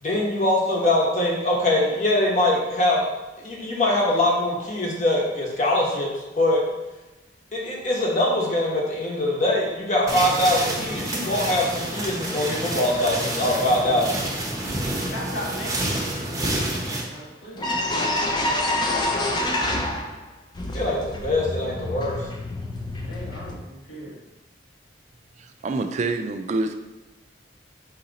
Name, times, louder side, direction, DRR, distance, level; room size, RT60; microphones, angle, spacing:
voice 1, 0.0-3.1 3.4-6.1 6.4-6.6 7.5-14.1 20.7-22.2, left 1 dB, 40° left, -3 dB, 1.0 m, -23 dB
sound 1, 10.1-17.0, right 1 dB, 20° right, 0.7 m, -28 dB
voice 2, 15.0-18.1 23.0-24.2, equal, 80° left, -4 dB, 1.2 m, -38 dB
sound 2, 17.2-17.3 17.5-20.2 20.5-23.6, left 1 dB, 25° left, 0.4 m, -27 dB
voice 3, 25.4-26.8, right 3 dB, 40° right, 7 dB, 0.3 m, -27 dB
4.7 x 2.8 x 3.9 m, 1.1 s
head